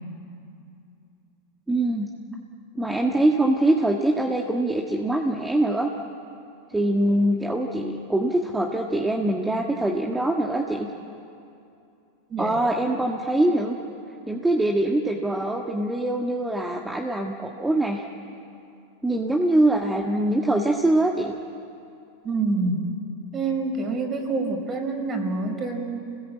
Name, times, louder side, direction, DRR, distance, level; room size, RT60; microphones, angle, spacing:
voice 1, 1.7-2.1 2.8-5.9 6.7-10.9 12.4-13.8 14.3-18.0 19.0-21.3, right 1 dB, 10° right, 1 dB, 1.7 m, -23 dB
voice 2, 22.2-22.9 23.3-26.0, right 3 dB, 30° right, 3 dB, 5.1 m, -27 dB
27.0 x 19.5 x 8.6 m, 2.6 s
hypercardioid pair, 105°, 0 cm